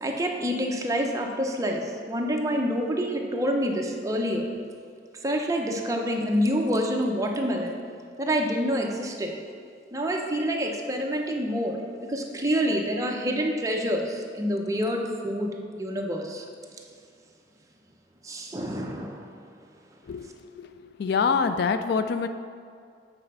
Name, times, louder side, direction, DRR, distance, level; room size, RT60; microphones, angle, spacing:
voice 1, 0.0-4.5 5.2-7.8 8.2-9.4 9.9-16.4 18.2-19.3, equal, 20° right, 1 dB, 0.7 m, -27 dB
voice 2, 21.0-22.3, left 5 dB, 65° left, 9 dB, 0.3 m, -25 dB
8.0 x 4.2 x 5.4 m, 2.2 s
head